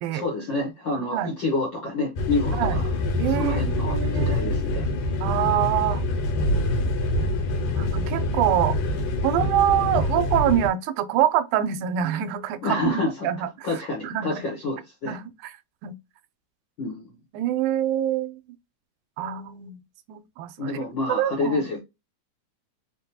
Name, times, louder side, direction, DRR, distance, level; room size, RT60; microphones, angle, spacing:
voice 1, 0.1-2.9 3.2-4.8 12.6-13.3 13.6-15.2 16.8-17.2 20.6-21.8, left 2 dB, 70° left, 1.1 m, -28 dB
voice 2, 1.0-1.3 2.5-2.8 3.1-4.6 5.2-6.0 7.8-8.8 9.2-13.7 14.0-14.4 15.1-15.5 15.8-15.9 17.3-18.4 19.2-19.8 20.1-20.8 21.1-21.6, right 11 dB, 90° right, 2.0 m, -25 dB
sound 1, 2.2-10.7, left 1 dB, 85° left, 2.3 m, -25 dB
4.9 x 2.2 x 2.7 m
omnidirectional pair, 3.4 m